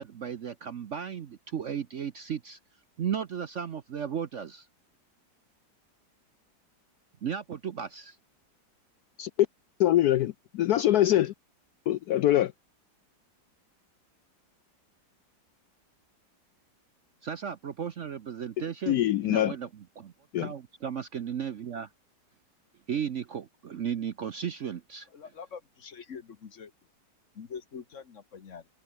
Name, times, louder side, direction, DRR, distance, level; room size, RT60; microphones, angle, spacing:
voice 1, 0.0-2.6 3.0-4.7 7.2-8.2 17.2-21.9 22.9-25.1, right 8 dB, 55° right, 0.9 m, -35 dB
voice 2, 9.8-11.3 11.9-12.5 18.9-19.5 20.3-20.5, left 13 dB, 70° left, 1.0 m, -24 dB
voice 3, 25.1-26.7 27.3-28.6, left 6 dB, 45° left, 1.4 m, -44 dB
omnidirectional pair, 2.0 m